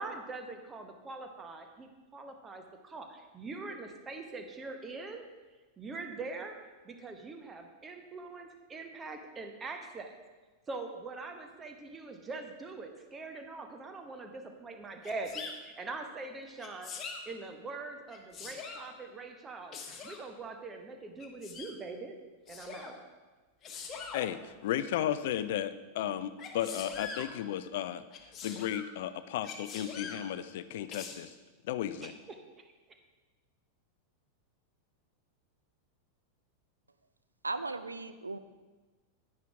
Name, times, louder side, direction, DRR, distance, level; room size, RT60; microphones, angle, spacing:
voice 1, 0.0-5.2 5.8-6.6 6.8-10.1 10.7-16.9 17.2-19.7 20.0-22.2 22.5-23.0 32.0-32.4, right 3 dB, 20° right, 5 dB, 1.1 m, -43 dB
Sneeze, 15.0-15.5 16.6-17.2 18.1-18.9 19.7-20.2 21.2-21.7 22.5-22.9 23.6-24.2 26.4-27.3 28.1-28.9 29.4-30.2 30.9-31.1, left 5 dB, 25° left, 1.2 m, -43 dB
voice 2, 24.1-28.0 28.4-31.3 31.6-32.1, left 11 dB, 55° left, 13 dB, 0.5 m, -34 dB
voice 3, 37.4-38.4, right 3 dB, 80° right, 11 dB, 0.5 m, -36 dB
10.0 x 9.7 x 3.5 m, 1.3 s
figure-of-eight pair, 90°, 0 cm